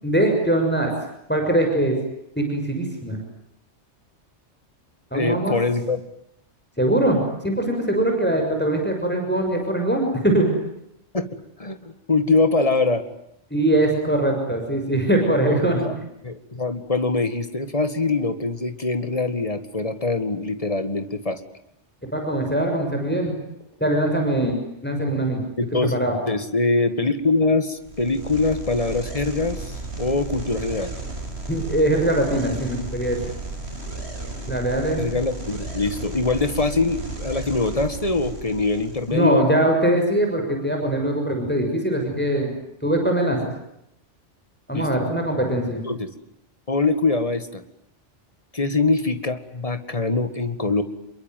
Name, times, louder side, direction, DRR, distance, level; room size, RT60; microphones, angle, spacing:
voice 1, 0.0-0.9 1.3-2.0 2.3-3.2 5.1-5.6 6.8-10.5 13.5-15.9 22.1-23.3 23.8-24.5 24.8-25.4 25.9-26.2 31.5-33.2 34.5-35.1 39.1-42.5 42.8-43.4 44.7-45.8, right 1 dB, 10° left, 3 dB, 6.4 m, -22 dB
voice 2, 5.1-6.0 11.1-11.3 11.6-13.0 15.4-16.0 16.2-21.4 25.6-25.9 26.3-30.9 35.0-39.4 44.7-45.0 45.8-46.1 46.7-47.6 48.5-50.8, left 3 dB, 30° left, 10 dB, 2.1 m, -23 dB
sound 1, 27.8-39.2, right 2 dB, 60° right, 6.0 m, -34 dB
28.0 x 22.5 x 9.3 m, 0.78 s
omnidirectional pair, 1.2 m